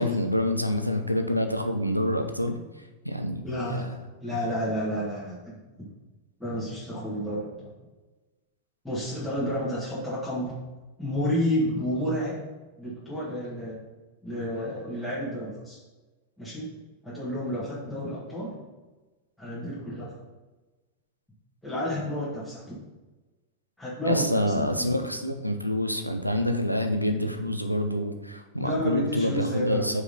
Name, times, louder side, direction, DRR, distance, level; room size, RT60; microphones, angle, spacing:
voice 1, 0.0-2.6 3.0-3.9 24.1-30.0, left 1 dB, 90° right, 7 dB, 0.6 m, -27 dB
voice 2, 3.4-3.9 4.2-5.9 6.4-7.7 8.8-10.5 11.0-12.4 12.8-13.8 14.2-15.8 16.4-16.8 17.0-18.6 19.4-20.2 21.6-22.8 23.8-25.1 28.6-30.0, equal, 5° left, -9 dB, 2.1 m, -31 dB
4.8 x 4.8 x 5.5 m, 1.2 s
figure-of-eight pair, 90°, 0 cm